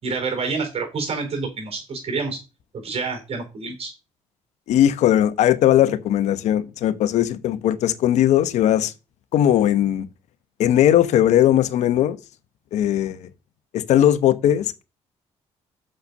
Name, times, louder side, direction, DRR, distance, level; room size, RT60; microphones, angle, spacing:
voice 1, 0.0-2.4 2.8-3.9, right 4 dB, 55° right, 4.3 m, -28 dB
voice 2, 4.7-8.9 9.3-10.1 10.6-12.2 12.7-13.3 13.7-14.8, left 11 dB, 80° left, 0.9 m, -18 dB
6.7 x 5.7 x 6.7 m
supercardioid pair, 70°, 12 cm